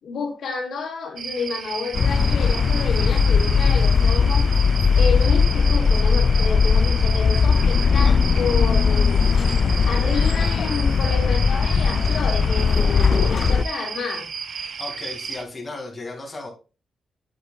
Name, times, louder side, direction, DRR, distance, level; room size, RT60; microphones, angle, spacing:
voice 1, 0.0-9.3 9.8-14.3, left 5 dB, 80° left, 2.8 m, -30 dB
sound 1, 1.2-15.4, right 6 dB, 60° right, 0.8 m, -33 dB
sound 2, 1.9-13.6, left 5 dB, 50° left, 0.4 m, -18 dB
voice 2, 14.8-16.5, left 2 dB, 25° left, 2.1 m, -35 dB
8.2 x 7.9 x 2.2 m
cardioid pair, 115°, 0 cm